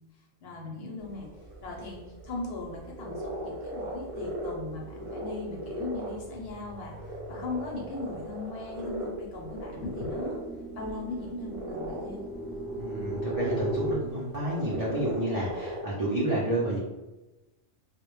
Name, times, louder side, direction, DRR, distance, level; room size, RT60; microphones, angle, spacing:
voice 1, 0.4-1.3 1.6-7.0 7.3-10.4 10.7-12.2, left 3 dB, 65° left, -1 dB, 0.7 m, -38 dB
sound 1, 1.0-15.8, equal, 50° right, 0.8 m, -39 dB
sound 2, 4.4-4.6 5.0-14.0, right 1 dB, 10° left, 0.6 m, -38 dB
voice 2, 12.8-16.8, right 1 dB, 90° right, -6 dB, 0.3 m, -30 dB
2.1 x 2.1 x 3.0 m, 1.1 s
omnidirectional pair, 1.3 m